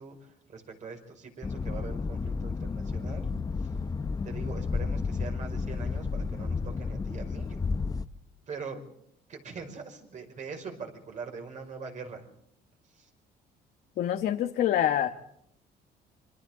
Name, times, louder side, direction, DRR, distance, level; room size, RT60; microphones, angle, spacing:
voice 1, 0.0-3.3 3.6-3.8 4.2-7.7 8.5-8.8 9.3-12.2 12.9-13.1, right 5 dB, 45° right, 4 dB, 5.4 m, -42 dB
sound 1, 1.4-8.1, left 4 dB, 20° left, 0.7 m, -32 dB
voice 2, 14.0-15.1, left 11 dB, 70° left, 5 dB, 1.2 m, -26 dB
27.5 x 24.5 x 3.8 m, 0.73 s
cardioid pair, 110°, 17 cm